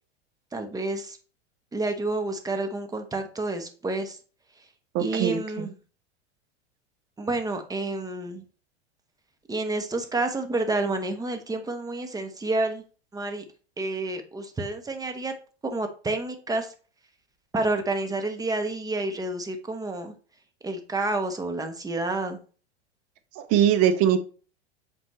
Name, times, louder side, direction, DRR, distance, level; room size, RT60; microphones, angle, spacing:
voice 1, 0.5-1.2 1.7-4.2 4.6-4.7 5.0-5.7 7.2-8.4 9.5-12.8 13.1-13.4 13.8-15.3 15.6-16.7 17.5-20.1 20.6-22.4, right 2 dB, 10° right, 6 dB, 1.1 m, -29 dB
voice 2, 4.9-5.7 23.4-24.2, right 9 dB, 45° right, 9 dB, 1.0 m, -22 dB
7.4 x 4.6 x 3.1 m, 0.38 s
figure-of-eight pair, 90°, 33 cm